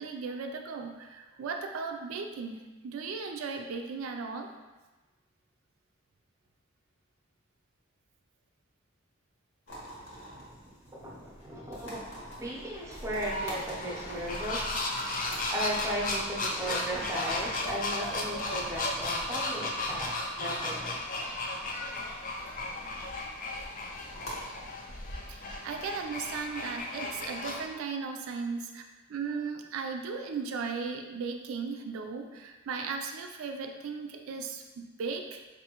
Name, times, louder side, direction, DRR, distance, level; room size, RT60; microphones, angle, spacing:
voice 1, 0.0-4.5 15.3-15.4 25.3-28.8 29.1-35.4, right 5 dB, 85° right, 4 dB, 0.4 m, -36 dB
sound 1, 9.7-26.8, equal, 80° left, 1.3 m, -45 dB
voice 2, 10.0-14.8 15.5-21.0, equal, 15° right, -4 dB, 0.6 m, -36 dB
sound 2, 13.3-27.7, left 2 dB, 40° left, 0.4 m, -35 dB
4.5 x 2.6 x 2.9 m, 1.2 s
head